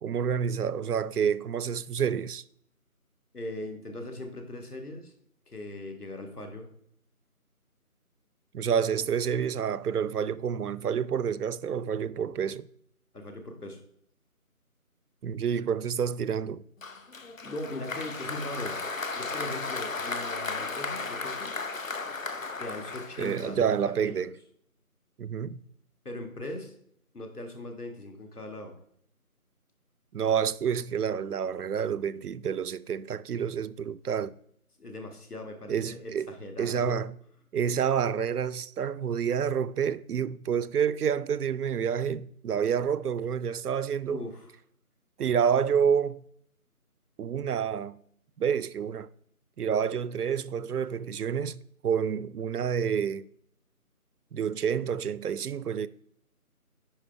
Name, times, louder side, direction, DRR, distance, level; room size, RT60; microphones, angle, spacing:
voice 1, 0.0-2.4 8.5-12.7 15.2-16.6 23.2-24.3 25.2-25.6 30.1-34.4 35.7-37.1 37.5-44.2 45.2-46.2 47.2-48.0 48.4-49.1 49.6-53.3 54.3-55.9, right 7 dB, 80° right, 0.5 m, -28 dB
voice 2, 3.3-5.1 5.5-6.7 13.1-13.8 17.4-18.8 19.2-21.6 22.6-24.3 26.1-26.7 27.1-28.7 34.8-37.0 44.1-44.5, left 1 dB, 80° left, 1.9 m, -39 dB
Applause, 16.8-23.9, left 3 dB, 60° left, 0.8 m, -35 dB
10.0 x 4.8 x 3.4 m
figure-of-eight pair, 170°, 45 cm